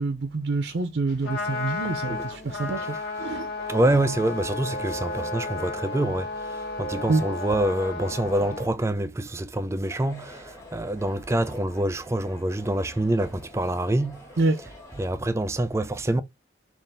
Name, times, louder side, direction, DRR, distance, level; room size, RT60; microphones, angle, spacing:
voice 1, 0.0-3.5 7.1-7.2 14.4-14.6, right 3 dB, 85° right, 0.6 m, -27 dB
Trumpet, 1.1-8.7, left 4 dB, 75° left, 1.3 m, -33 dB
sound 1, 2.8-8.2, right 4 dB, 55° left, 1.6 m, -41 dB
voice 2, 3.6-14.4 15.0-16.2, right 1 dB, 15° right, 0.3 m, -26 dB
sound 2, 9.8-15.1, left 1 dB, 15° left, 1.6 m, -48 dB
3.7 x 2.5 x 4.0 m
head